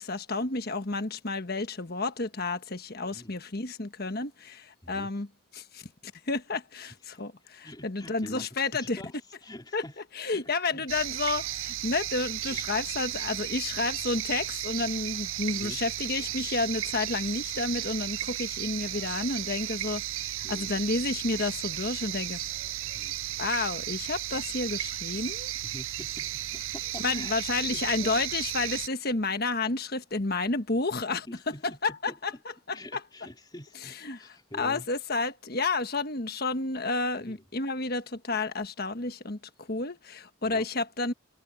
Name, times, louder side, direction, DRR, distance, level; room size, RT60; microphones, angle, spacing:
voice 1, 0.0-5.3 5.5-5.8 6.3-9.0 9.7-9.8 10.1-22.4 23.4-25.5 27.0-31.3 31.8-32.3 32.9-33.0 33.8-34.2 34.6-39.4 39.7-41.1, left 3 dB, 45° left, 1.4 m, -31 dB
voice 2, 7.6-10.0 10.3-10.9 12.5-12.6 15.5-15.8 20.4-20.7 22.9-23.2 25.6-28.2 31.3-32.4 32.7-34.9 37.2-37.4 40.4-40.7, left 1 dB, 20° left, 2.9 m, -46 dB
sound 1, 10.9-28.9, right 14 dB, 70° right, 0.5 m, -34 dB
head